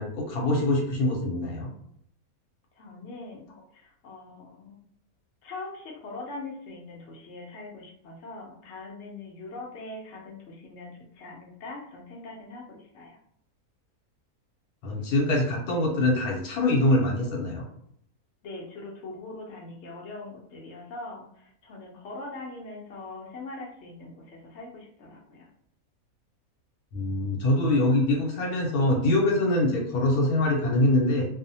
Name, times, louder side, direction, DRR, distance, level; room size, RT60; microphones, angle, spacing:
voice 1, 0.0-1.7 14.8-17.6 26.9-31.3, left 1 dB, 80° left, -1 dB, 1.1 m, -24 dB
voice 2, 2.7-4.8 5.4-13.2 18.4-25.5, left 2 dB, 65° left, 0 dB, 0.8 m, -42 dB
2.6 x 2.0 x 2.7 m, 0.71 s
omnidirectional pair, 1.6 m